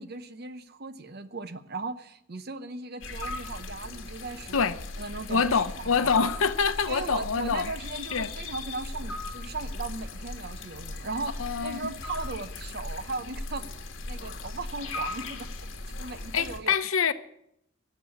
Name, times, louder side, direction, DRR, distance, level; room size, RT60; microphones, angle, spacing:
voice 1, 0.0-4.7 5.0-6.1 6.9-13.7 14.1-15.5 16.0-16.8, right 3 dB, 50° right, 0.9 m, -37 dB
sound 1, 3.0-16.6, left 2 dB, 65° left, 1.9 m, -38 dB
voice 2, 5.3-7.7 8.1-8.3 11.4-11.9 16.3-17.1, left 6 dB, 90° left, 0.8 m, -26 dB
17.0 x 7.7 x 7.1 m
head